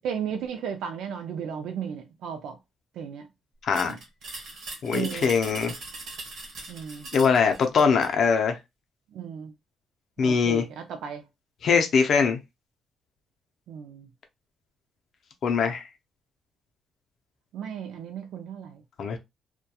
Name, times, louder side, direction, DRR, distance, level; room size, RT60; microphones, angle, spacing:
voice 1, 0.0-2.6 2.9-3.3 3.8-4.0 4.9-5.3 6.7-7.1 9.1-9.5 10.2-11.2 13.7-14.1 17.5-18.8, right 7 dB, 80° right, 0.3 m, -35 dB
voice 2, 3.6-4.0 4.8-5.7 7.1-8.6 10.2-10.6 11.6-12.4 15.4-15.8 19.0-19.2, left 5 dB, 50° left, 0.5 m, -22 dB
sound 1, 3.7-8.2, right 2 dB, 60° right, 1.3 m, -40 dB
2.8 x 2.2 x 2.2 m
cardioid pair, 165°, 0 cm